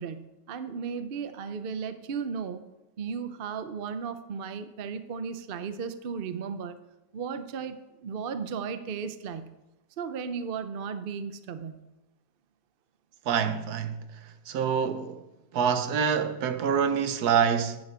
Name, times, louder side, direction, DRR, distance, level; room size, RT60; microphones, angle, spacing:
voice 1, 0.0-2.6 3.0-6.8 7.1-9.5 10.0-11.8, right 6 dB, 50° right, 0.7 m, -35 dB
voice 2, 13.3-14.0 14.5-15.2 15.5-17.8, right 7 dB, 75° right, 1.3 m, -26 dB
9.8 x 8.3 x 6.7 m
omnidirectional pair, 1.7 m